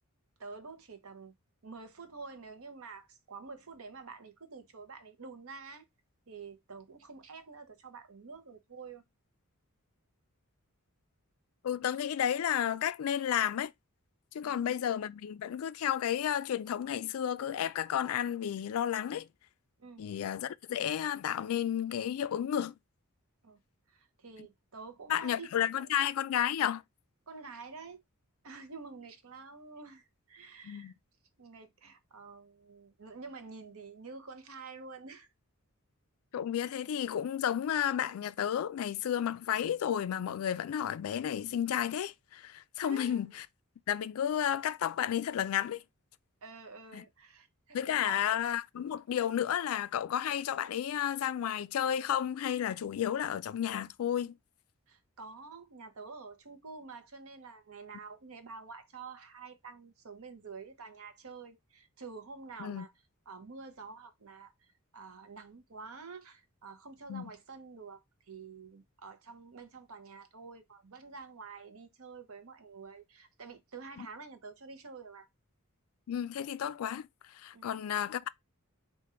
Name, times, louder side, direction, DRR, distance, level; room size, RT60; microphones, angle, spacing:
voice 1, 0.4-1.3 1.6-5.8 6.3-9.0 14.4-14.8 19.8-20.0 23.4-23.6 23.9-25.9 27.3-28.0 28.4-30.9 31.4-35.3 42.8-43.3 46.4-48.2 54.9-62.9 63.3-75.3 77.5-78.0, right 4 dB, 70° right, 0.8 m, -48 dB
voice 2, 11.6-13.7 14.3-19.3 20.0-22.7 25.1-26.8 30.6-30.9 36.3-43.5 43.9-45.8 46.9-47.0 47.7-54.4 62.6-62.9 67.1-67.3 74.0-74.1 76.1-77.1 77.3-78.3, left 9 dB, 70° left, 0.3 m, -32 dB
3.8 x 2.5 x 4.2 m
head